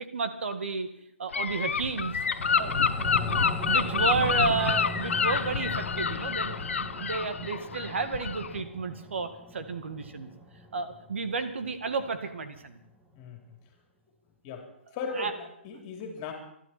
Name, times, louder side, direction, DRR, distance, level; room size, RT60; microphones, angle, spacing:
voice 1, 0.1-0.9 1.2-2.2 2.5-2.7 3.0-3.1 3.4-10.3 10.7-12.8 15.1-15.3, right 4 dB, 70° right, 8 dB, 1.9 m, -32 dB
Gull seagull / Wind, 1.3-8.6, left 6 dB, 80° left, 0.9 m, -28 dB
sound 1, 1.8-12.4 12.8-12.9, left 1 dB, 5° right, 1.3 m, -41 dB
voice 2, 2.5-3.0 13.1-13.6 14.4-14.7 14.9-16.3, left 4 dB, 25° left, 3 dB, 3.0 m, -38 dB
26.0 x 12.0 x 4.3 m, 0.74 s
hypercardioid pair, 155°, 7 cm